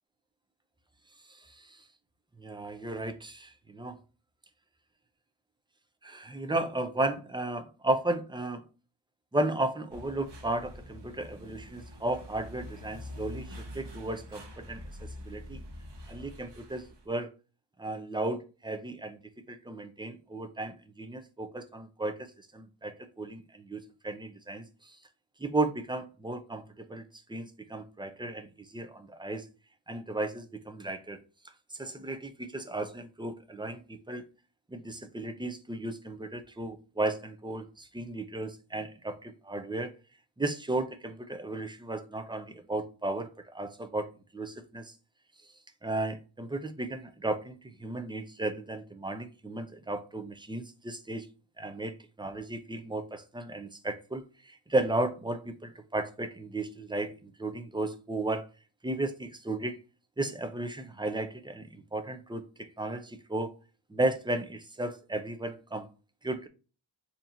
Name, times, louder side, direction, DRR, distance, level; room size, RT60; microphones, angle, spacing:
voice 1, 1.3-1.8 2.4-4.0 6.0-8.6 9.3-15.6 16.1-17.3 17.8-19.2 19.5-25.0 25.4-27.0 27.3-29.5 29.9-31.2 31.8-34.2 34.7-39.9 40.4-44.1 44.3-44.9 45.8-51.3 51.6-58.5 58.8-59.8 60.2-63.5 63.9-65.9 66.2-66.5, right 2 dB, 10° right, 0.5 m, -34 dB
sound 1, 9.9-17.1, equal, 60° right, 1.0 m, -45 dB
3.9 x 2.9 x 2.6 m
wide cardioid pair, 70°, 47 cm